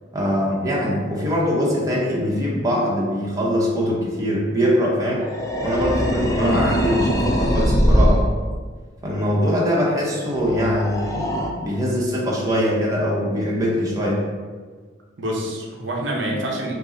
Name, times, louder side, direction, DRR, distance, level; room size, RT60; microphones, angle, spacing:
voice 1, 0.1-5.2 5.6-8.3 9.0-14.2, equal, 20° right, -4 dB, 0.8 m, -22 dB
sound 1, 4.9-8.3 10.3-11.5, equal, 20° left, 0.4 m, -21 dB
voice 2, 6.3-6.6 15.2-16.7, equal, 90° right, -1 dB, 0.7 m, -26 dB
5.2 x 2.0 x 3.9 m, 1.5 s
head